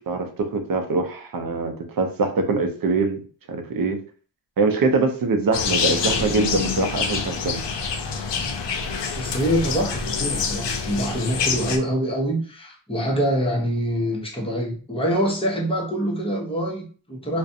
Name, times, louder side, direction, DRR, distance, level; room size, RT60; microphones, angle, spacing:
voice 1, 0.0-4.0 4.6-7.6, right 3 dB, 50° right, 5 dB, 0.6 m, -23 dB
sound 1, 5.5-11.8, left 5 dB, 65° left, 0.5 m, -26 dB
voice 2, 9.2-17.4, equal, 10° left, -3 dB, 0.8 m, -25 dB
2.4 x 2.2 x 2.6 m, 0.40 s
wide cardioid pair, 75°, 46 cm